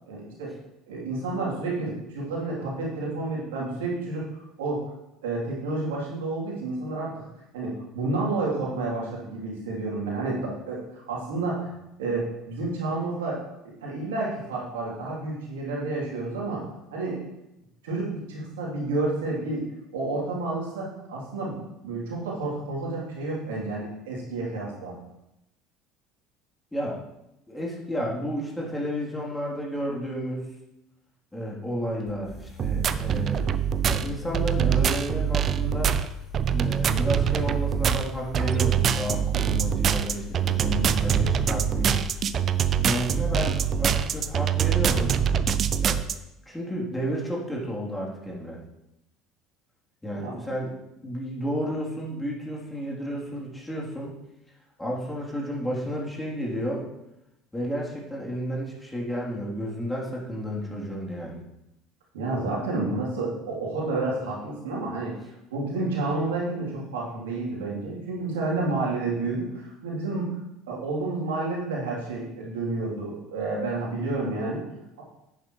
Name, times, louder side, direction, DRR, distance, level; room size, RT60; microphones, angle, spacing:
voice 1, 0.1-0.5 0.9-4.8 5.2-7.2 7.5-11.7 12.0-13.4 13.8-16.6 16.9-17.2 17.8-19.6 19.9-21.6 21.8-24.9 50.1-50.4 62.1-65.2 65.5-70.4 70.7-74.6, right 2 dB, 75° right, -4 dB, 3.1 m, -30 dB
voice 2, 27.5-30.5 31.3-33.5 33.9-35.9 36.5-42.0 42.8-45.1 45.8-46.0 46.5-48.6 50.0-50.7 51.0-54.1 54.8-56.9 57.5-61.4, equal, 10° left, -4 dB, 3.2 m, -31 dB
sound 1, 32.1-44.7, left 9 dB, 35° left, 3.3 m, -41 dB
sound 2, 32.6-46.1, right 8 dB, 45° right, 0.5 m, -24 dB
10.0 x 9.3 x 3.1 m, 0.88 s
hypercardioid pair, 65°, 0 cm